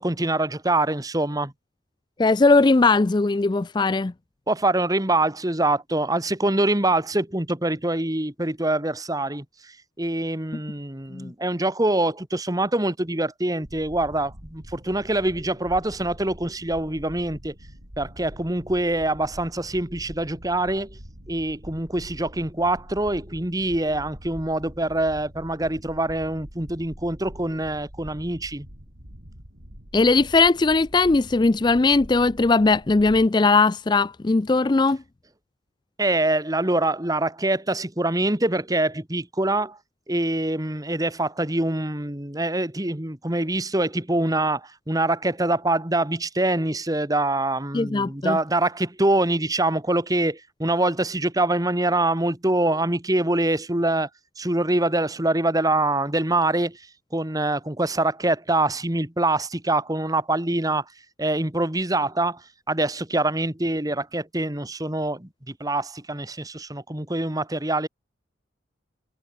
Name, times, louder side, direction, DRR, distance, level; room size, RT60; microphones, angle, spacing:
voice 1, 0.0-1.5 4.5-17.6 18.0-21.0 21.3-28.7 36.0-39.8 40.1-54.1 54.4-56.8 57.1-60.8 61.2-67.9, right 2 dB, 20° right, 1.9 m, -24 dB
voice 2, 2.2-4.1 11.1-11.3 29.9-35.0 47.7-48.4, left 3 dB, 25° left, 0.4 m, -19 dB
sound 1, 13.6-33.3, equal, 60° right, 7.2 m, -44 dB
head